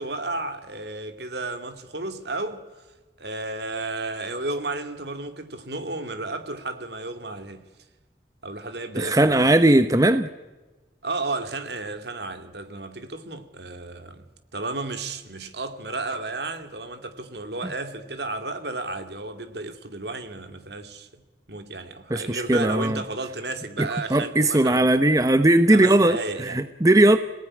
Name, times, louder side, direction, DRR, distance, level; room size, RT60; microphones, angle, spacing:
voice 1, 0.0-2.6 3.2-7.7 8.4-9.7 11.0-14.3 14.5-21.1 21.5-24.9 25.7-26.7, right 2 dB, 70° right, 2.6 m, -33 dB
voice 2, 9.0-10.3 22.1-23.0 23.8-27.2, right 1 dB, 20° right, 0.8 m, -19 dB
27.0 x 18.5 x 9.9 m
head